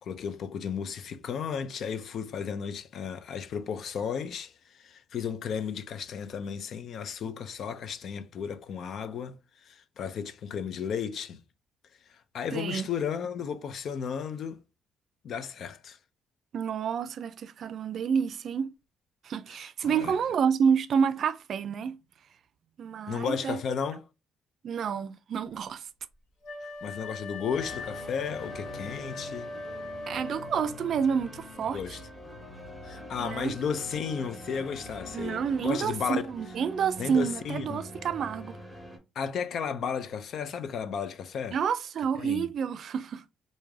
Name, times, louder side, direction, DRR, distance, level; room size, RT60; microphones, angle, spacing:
voice 1, 0.0-11.4 12.3-14.6 15.2-16.0 19.8-20.2 23.1-24.0 26.8-29.5 31.7-32.0 32.8-36.2 37.0-37.8 39.2-41.6 42.2-42.5, left 7 dB, 65° left, 0.5 m, -34 dB
voice 2, 12.5-12.9 16.5-18.7 19.2-22.0 22.8-23.6 24.6-25.8 30.1-32.0 33.2-33.6 35.1-38.6 41.5-43.2, right 7 dB, 65° right, 0.4 m, -29 dB
Wind instrument woodwind instrument, 26.4-30.9, left 2 dB, 85° left, 1.3 m, -40 dB
sound 1, 27.5-39.0, left 1 dB, 15° left, 1.3 m, -44 dB
3.2 x 2.7 x 3.5 m
cardioid pair, 90°, 0 cm